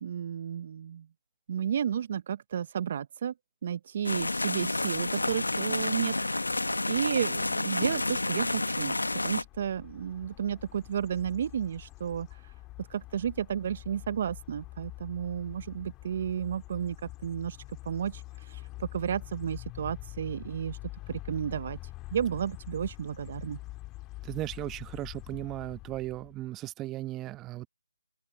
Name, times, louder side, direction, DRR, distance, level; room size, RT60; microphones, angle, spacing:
voice 1, 0.0-1.1 1.5-3.3 3.6-6.1 6.5-8.9 9.2-12.5 12.8-17.6 17.8-20.8 21.1-21.8 22.1-23.6, right 8 dB, 40° right, 0.7 m, -32 dB
sound 1, 4.0-9.4, left 2 dB, 80° left, 1.3 m, -30 dB
sound 2, 9.2-26.4, left 19 dB, 15° left, 1.9 m, -45 dB
voice 2, 24.2-27.7, right 16 dB, 15° right, 1.2 m, -36 dB
open air
figure-of-eight pair, 155°, 0 cm